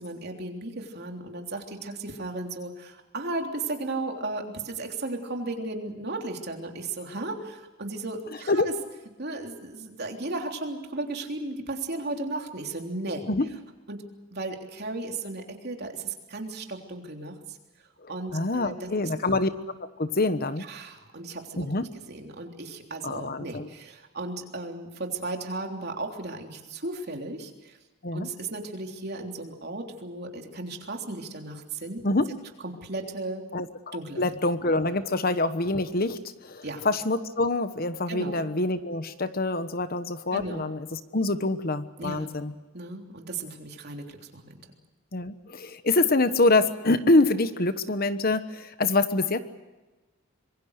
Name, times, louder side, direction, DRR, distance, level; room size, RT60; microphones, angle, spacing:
voice 1, 0.0-8.7 9.2-13.2 13.9-14.0 14.3-17.6 18.1-19.1 20.6-21.7 22.1-27.8 28.1-32.0 32.6-33.4 33.9-34.4 36.6-36.8 38.1-38.4 40.3-40.6 42.0-42.3 42.7-44.5, right 2 dB, 50° right, 3 dB, 3.4 m, -35 dB
voice 2, 18.0-19.5 20.0-20.6 21.6-21.9 23.0-23.7 28.0-28.3 32.0-32.3 33.5-42.5 45.1-49.4, left 2 dB, 45° left, 11 dB, 1.2 m, -25 dB
26.0 x 23.0 x 6.6 m, 1.2 s
head